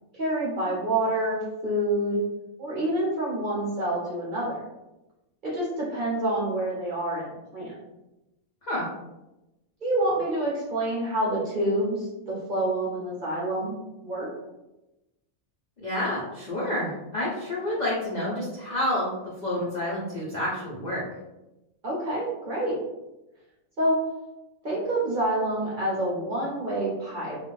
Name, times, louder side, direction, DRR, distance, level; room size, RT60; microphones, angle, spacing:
voice 1, 0.1-2.2 2.6-4.6 5.4-7.8 9.8-13.7 14.0-14.3 21.8-22.8 23.8-24.0 24.6-27.4, right 1 dB, 50° right, -6 dB, 0.6 m, -27 dB
voice 2, 15.8-19.1 19.4-21.1, left 1 dB, 80° left, -6 dB, 0.3 m, -29 dB
2.4 x 2.1 x 3.0 m, 0.98 s
omnidirectional pair, 1.5 m